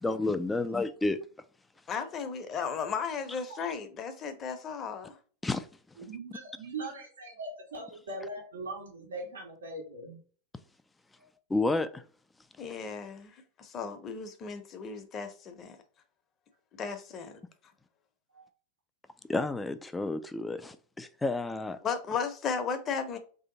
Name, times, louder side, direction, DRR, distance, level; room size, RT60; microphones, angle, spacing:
voice 1, 0.0-1.2 5.4-5.7 11.5-12.0 19.3-21.8, left 2 dB, 10° left, 0.3 m, -30 dB
voice 2, 1.9-5.2 12.6-15.8 16.8-17.4 21.8-23.2, left 6 dB, 35° left, 0.7 m, -35 dB
voice 3, 6.0-10.2 18.3-18.5, right 2 dB, 90° right, 1.4 m, -41 dB
3.3 x 2.8 x 3.9 m
hypercardioid pair, 105°, 0 cm